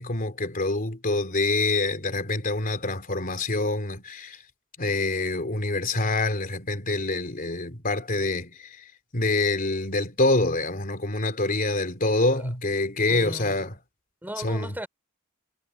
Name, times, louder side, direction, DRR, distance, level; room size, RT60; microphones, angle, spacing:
voice 1, 0.0-4.4 4.8-13.7 14.4-14.7, left 2 dB, 40° left, 3.4 m, -26 dB
voice 2, 13.1-13.7 14.2-14.9, right 1 dB, 10° right, 3.1 m, -37 dB
head